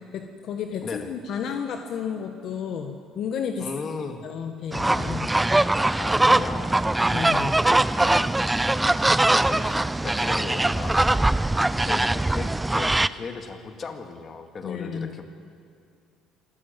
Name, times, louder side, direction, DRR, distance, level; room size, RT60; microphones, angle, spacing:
voice 1, 0.1-3.7 4.2-5.3 7.1-7.6 14.6-15.1, left 7 dB, 60° left, 5 dB, 1.4 m, -32 dB
voice 2, 3.6-4.3 6.0-6.8 7.8-8.5 9.3-9.8 10.0-11.4 11.8-15.2, left 4 dB, 35° left, 6 dB, 2.1 m, -37 dB
sound 1, 4.7-13.1, right 2 dB, 10° right, 0.5 m, -22 dB
26.5 x 13.5 x 9.2 m, 2.4 s
cardioid pair, 105°, 0 cm